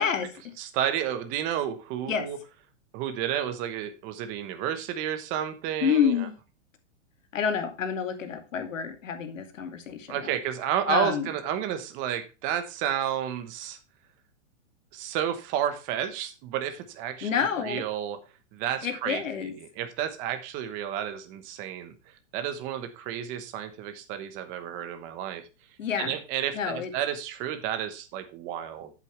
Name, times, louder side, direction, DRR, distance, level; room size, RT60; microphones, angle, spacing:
voice 1, 0.0-0.6 2.1-2.3 5.8-6.3 7.3-10.3 10.9-11.3 17.2-17.9 18.8-19.5 25.8-26.2 26.5-26.9, left 7 dB, 85° left, 7 dB, 2.4 m, -28 dB
voice 2, 0.6-2.4 2.9-6.1 10.1-13.8 14.9-18.2 18.5-19.2 19.8-21.9 22.3-25.5 26.0-28.9, right 10 dB, 20° right, 8 dB, 1.0 m, -31 dB
8.4 x 8.1 x 3.2 m, 0.30 s
hypercardioid pair, 165°, 38 cm